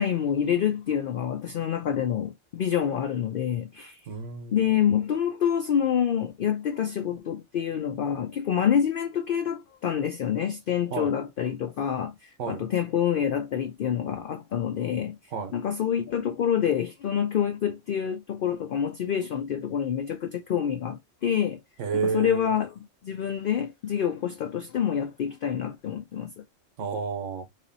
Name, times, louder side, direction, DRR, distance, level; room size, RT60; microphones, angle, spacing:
voice 1, 0.0-4.0 4.5-15.2 15.5-21.6 21.9-26.3, left 9 dB, 60° left, 0.6 m, -27 dB
voice 2, 4.1-4.6 10.9-11.2 12.4-12.7 15.3-15.6 21.8-22.5 26.8-27.5, right 6 dB, 80° right, 1.2 m, -30 dB
3.9 x 2.9 x 2.7 m
omnidirectional pair, 1.3 m